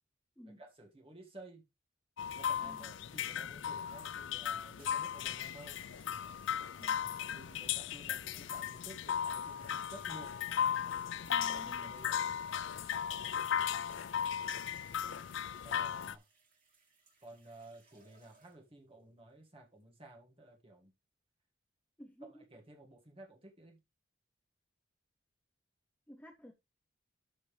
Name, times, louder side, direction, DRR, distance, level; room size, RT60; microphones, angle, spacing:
voice 1, 0.4-1.7 2.4-5.9 7.3-10.3 11.6-12.3 15.6-16.3 17.2-20.9 22.2-23.8, right 2 dB, 30° right, 1.8 m, -54 dB
sound 1, 2.2-16.1, left 8 dB, 70° left, 0.4 m, -36 dB
voice 2, 2.6-2.9 6.8-7.2 11.3-11.9 22.0-22.3 26.1-26.5, equal, 5° left, 0.7 m, -53 dB
sound 2, 4.8-18.8 19.7-20.0, right 3 dB, 45° right, 2.6 m, -66 dB
12.5 x 4.2 x 3.3 m
head